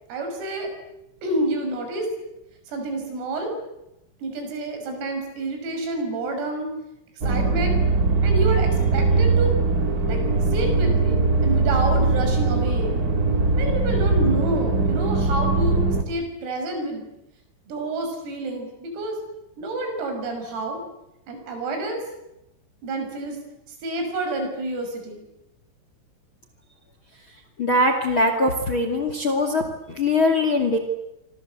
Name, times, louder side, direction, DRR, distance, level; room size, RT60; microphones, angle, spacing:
voice 1, 0.1-0.7 1.2-2.1 2.7-3.5 4.2-6.7 7.2-7.8 8.2-9.5 10.1-10.2 10.5-13.0 13.6-17.1 17.7-19.2 19.6-20.8 21.3-22.0 22.8-23.4 23.8-25.2, right 2 dB, 80° right, 5 dB, 8.5 m, -28 dB
sound 1, 7.2-16.0, right 3 dB, 45° right, 1.2 m, -21 dB
voice 2, 27.6-30.8, left 2 dB, 40° left, 6 dB, 2.1 m, -21 dB
27.0 x 24.5 x 8.0 m, 0.88 s
omnidirectional pair, 5.9 m